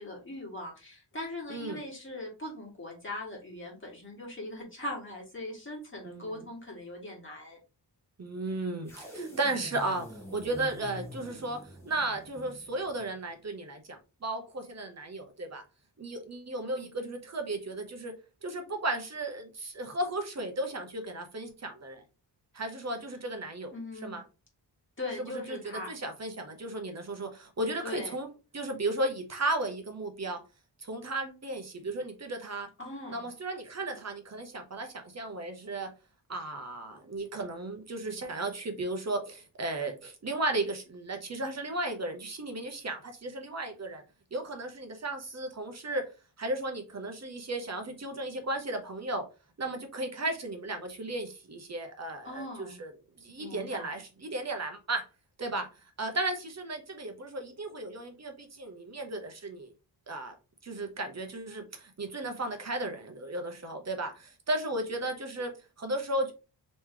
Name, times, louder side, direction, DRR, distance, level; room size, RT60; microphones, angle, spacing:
voice 1, 0.0-7.6 16.6-16.7 23.7-24.1 25.0-25.9 27.8-28.1 32.8-33.3 52.2-52.8 53.4-53.9, left 2 dB, 25° left, 1.7 m, -40 dB
voice 2, 1.5-1.8 6.0-6.4 8.2-15.6 16.0-18.1 18.4-22.0 22.5-23.7 24.0-24.2 25.2-28.3 28.5-30.4 30.8-32.7 33.1-35.9 36.3-44.0 44.3-46.1 46.4-49.3 49.6-52.9 53.2-55.1 55.4-55.7 56.0-59.7 60.1-60.3 60.6-66.3, right 2 dB, 40° right, 0.8 m, -35 dB
sound 1, 8.8-13.1, right 1 dB, 5° left, 1.2 m, -45 dB
3.1 x 3.1 x 3.6 m
wide cardioid pair, 145°, 43 cm